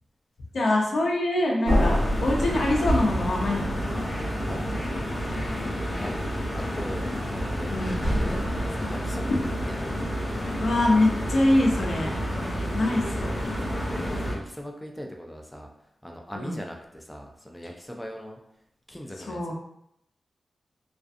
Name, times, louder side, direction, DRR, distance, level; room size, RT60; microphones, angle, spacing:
voice 1, 0.5-4.1 7.7-8.1 10.6-12.1 12.7-13.4 16.4-16.6 19.3-19.5, left 1 dB, 75° left, -1 dB, 0.6 m, -24 dB
sound 1, 1.6-7.5, left 1 dB, 80° right, 0.8 m, -31 dB
sound 2, 1.7-14.3, equal, 30° left, 0.8 m, -29 dB
voice 2, 4.5-5.1 6.0-6.1 6.7-7.7 8.2-9.9 13.6-15.7 16.0-18.4 18.9-19.5, equal, 5° left, 1 dB, 0.4 m, -40 dB
2.4 x 2.4 x 2.5 m, 0.76 s
cardioid pair, 70°, 0 cm